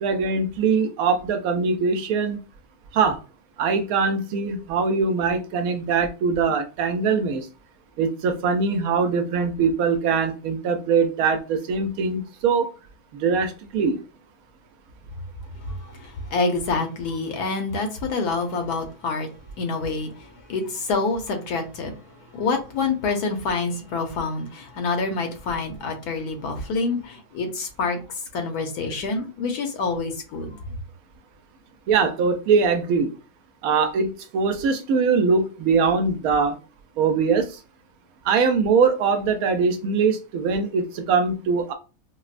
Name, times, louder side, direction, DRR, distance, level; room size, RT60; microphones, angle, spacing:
voice 1, 0.0-2.4 2.9-3.2 3.6-7.5 8.0-12.7 13.1-14.0 31.9-33.1 33.6-36.6 37.0-37.6 38.2-41.7, right 5 dB, 75° right, 1.0 m, -22 dB
voice 2, 16.3-19.3 19.6-20.1 20.5-21.9 22.3-28.0 28.3-30.6, left 4 dB, 85° left, 1.3 m, -26 dB
4.3 x 2.0 x 2.4 m
omnidirectional pair, 1.6 m